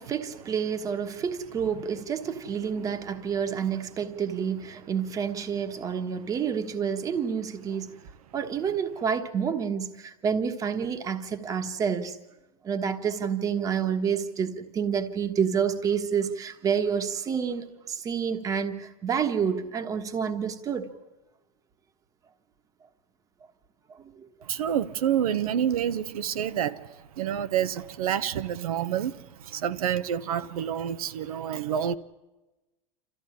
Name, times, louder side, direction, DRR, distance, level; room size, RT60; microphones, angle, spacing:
voice 1, 0.0-8.0 8.3-12.2 12.6-20.9 24.2-24.3, right 7 dB, 20° right, 1.4 m, -29 dB
voice 2, 24.5-31.9, right 9 dB, 90° right, 1.1 m, -28 dB
28.0 x 14.5 x 9.9 m
supercardioid pair, 155°, 18 cm